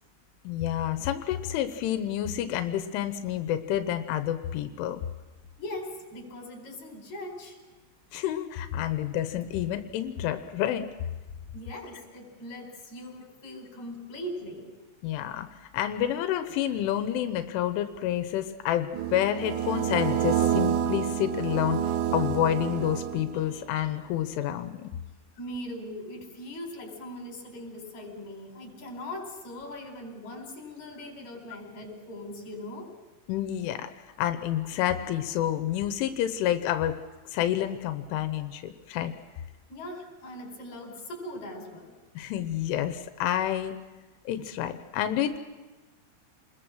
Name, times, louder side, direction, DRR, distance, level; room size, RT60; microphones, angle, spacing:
voice 1, 0.4-5.0 8.1-10.9 15.0-15.5 15.7-24.9 33.3-33.9 34.2-37.0 37.3-39.2 42.2-43.7 44.3-45.4, left 11 dB, 90° left, 9 dB, 3.4 m, -29 dB
voice 2, 5.6-7.6 11.5-14.7 25.4-32.9 39.7-41.9, left 1 dB, 40° left, 2 dB, 5.5 m, -40 dB
sound 1, 18.9-23.6, right 9 dB, 75° right, 3.4 m, -28 dB
28.5 x 21.0 x 6.4 m, 1.2 s
omnidirectional pair, 5.5 m